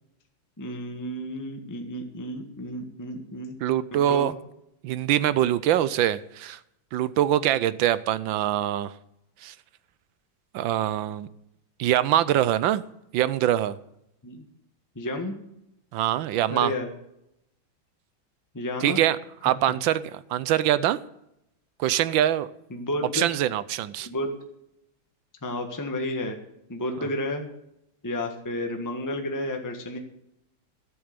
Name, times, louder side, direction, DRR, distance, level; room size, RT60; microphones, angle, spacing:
voice 1, 0.6-3.5 3.9-4.3 14.2-14.4 14.9-15.4 16.5-16.9 18.5-19.0 22.7-23.3 24.0-24.3 25.4-26.4 26.7-27.5 28.0-30.0, left 1 dB, 10° left, 4 dB, 1.3 m, -31 dB
voice 2, 3.6-4.3 4.8-6.6 6.9-8.9 9.4-9.5 10.5-11.3 11.8-12.8 13.1-13.8 15.9-16.7 18.8-19.2 19.4-21.0 21.8-22.5 23.1-24.1 27.0-27.1, right 12 dB, 75° right, 16 dB, 1.3 m, -24 dB
13.5 x 7.9 x 6.7 m, 0.80 s
omnidirectional pair, 2.2 m